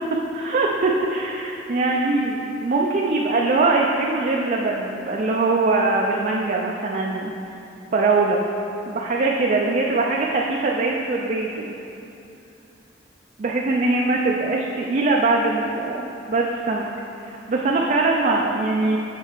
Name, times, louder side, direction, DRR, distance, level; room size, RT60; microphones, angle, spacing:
voice 1, 0.3-7.3 7.9-8.4 8.9-11.7 13.4-16.9 17.2-19.0, right 3 dB, 45° right, -1 dB, 0.4 m, -22 dB
6.7 x 4.4 x 4.5 m, 2.8 s
head